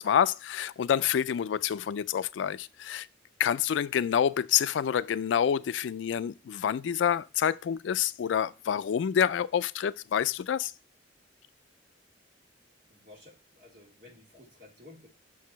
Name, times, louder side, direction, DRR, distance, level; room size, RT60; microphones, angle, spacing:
voice 1, 0.0-3.1 3.4-10.7, left 8 dB, 75° left, 0.3 m, -27 dB
voice 2, 12.8-15.1, left 2 dB, 45° right, 3.2 m, -54 dB
6.0 x 4.7 x 5.6 m
head